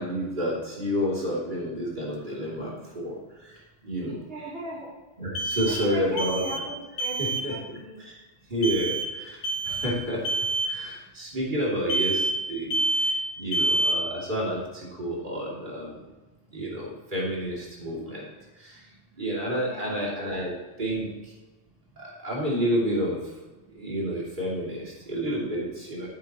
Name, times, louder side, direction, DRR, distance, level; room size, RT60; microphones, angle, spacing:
voice 1, 0.0-3.5 3.8-4.2 5.2-6.6 7.2-7.6 8.0-8.1 8.5-9.4 9.6-10.2 10.6-12.2 12.5-12.7 13.0-13.1 13.4-15.9 16.5-18.2 18.6-18.8 19.2-21.1 22.0-23.2 23.7-26.1, equal, 45° right, -5 dB, 3.1 m, -30 dB
sound 1, 2.1-2.2 5.3-6.7 7.0-7.5 8.6-9.1 9.4-9.9 10.2-10.7 11.9-12.4 12.7-13.3 13.5-14.1, right 2 dB, 90° left, 1.6 m, -27 dB
voice 2, 4.3-5.0 5.7-8.1 19.5-20.0, right 2 dB, 80° right, -6 dB, 2.8 m, -37 dB
14.0 x 8.2 x 3.0 m, 1.1 s
omnidirectional pair, 1.1 m